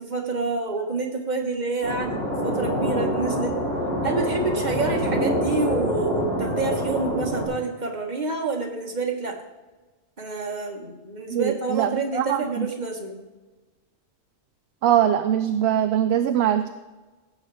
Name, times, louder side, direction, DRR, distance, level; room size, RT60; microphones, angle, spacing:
voice 1, 0.0-2.2 2.4-3.5 4.0-9.4 10.2-13.2, right 3 dB, 35° right, 1 dB, 1.5 m, -28 dB
sound 1, 1.8-7.5, equal, 50° left, 3.3 m, -25 dB
voice 2, 11.3-12.7 14.8-16.7, right 10 dB, 65° right, 8 dB, 0.7 m, -22 dB
16.5 x 7.3 x 3.4 m, 1.2 s
omnidirectional pair, 1.3 m